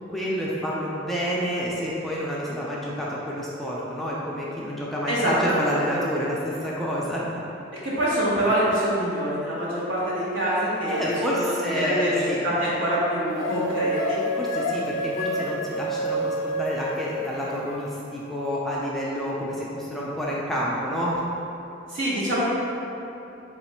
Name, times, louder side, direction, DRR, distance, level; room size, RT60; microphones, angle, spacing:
voice 1, 0.1-7.3 10.9-12.4 14.4-21.2, equal, ahead, -6 dB, 0.3 m, -28 dB
voice 2, 5.1-6.0 7.8-11.4 11.7-14.2 21.9-22.4, equal, 75° right, -9 dB, 1.2 m, -25 dB
sound 1, 13.4-17.8, equal, 85° left, 0.4 m, -28 dB
4.1 x 2.4 x 4.2 m, 2.9 s
head